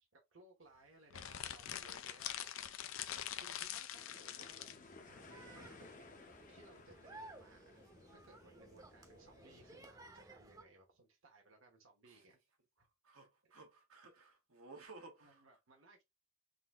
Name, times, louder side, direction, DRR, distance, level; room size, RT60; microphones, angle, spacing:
voice 1, 0.1-2.6 3.4-4.7 5.3-6.0 6.5-12.4 12.8-12.9 13.4-13.5 15.2-16.0, right 3 dB, 65° right, 1.1 m, -63 dB
sound 1, 1.1-4.8, left 11 dB, 70° left, 0.4 m, -44 dB
sound 2, 3.9-9.9, left 3 dB, 40° left, 0.7 m, -59 dB
sound 3, 5.0-10.6, right 2 dB, 15° right, 0.7 m, -57 dB
voice 2, 13.0-15.4, right 3 dB, 85° right, 1.2 m, -57 dB
3.9 x 2.7 x 3.5 m
head